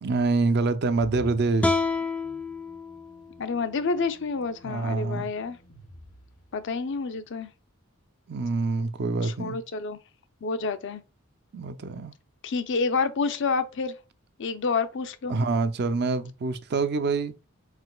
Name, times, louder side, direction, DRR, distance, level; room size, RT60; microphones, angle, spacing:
voice 1, 0.0-1.8 4.6-5.3 8.3-9.6 11.5-12.1 15.3-17.3, right 3 dB, 55° right, 0.5 m, -26 dB
sound 1, 1.0-7.0, left 1 dB, 85° left, 2.3 m, -50 dB
sound 2, 1.6-4.8, left 3 dB, 5° left, 0.3 m, -30 dB
voice 2, 3.4-5.6 6.5-7.5 9.2-10.0 10.4-11.0 12.4-13.9 14.4-15.3, left 4 dB, 60° left, 0.5 m, -28 dB
4.9 x 3.8 x 2.2 m
head